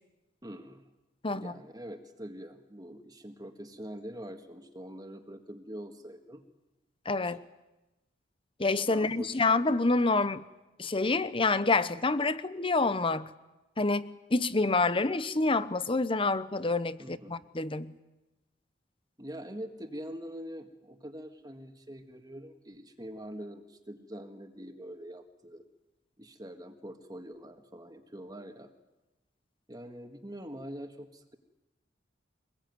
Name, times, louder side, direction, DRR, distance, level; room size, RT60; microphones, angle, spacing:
voice 1, 0.4-0.8 1.3-6.4 7.3-7.4 8.9-9.4 17.0-17.4 19.2-25.6 26.2-28.7 29.7-31.4, equal, 20° right, 5 dB, 1.8 m, -44 dB
voice 2, 7.1-7.4 8.6-10.4 10.8-13.3 13.8-17.9, left 3 dB, 25° left, 15 dB, 0.9 m, -27 dB
25.0 x 21.0 x 9.6 m, 1.0 s
head